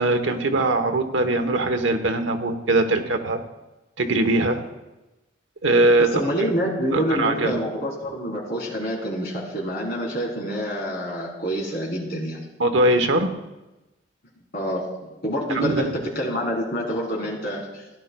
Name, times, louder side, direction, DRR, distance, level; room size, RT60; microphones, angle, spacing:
voice 1, 0.0-3.4 4.0-4.6 5.6-6.1 6.9-7.6 12.6-13.4 15.5-15.8, right 2 dB, 75° right, 6 dB, 0.9 m, -21 dB
voice 2, 6.0-12.4 14.5-14.9 15.2-17.8, equal, 55° left, -3 dB, 3.4 m, -27 dB
16.5 x 10.5 x 2.2 m, 1.0 s
head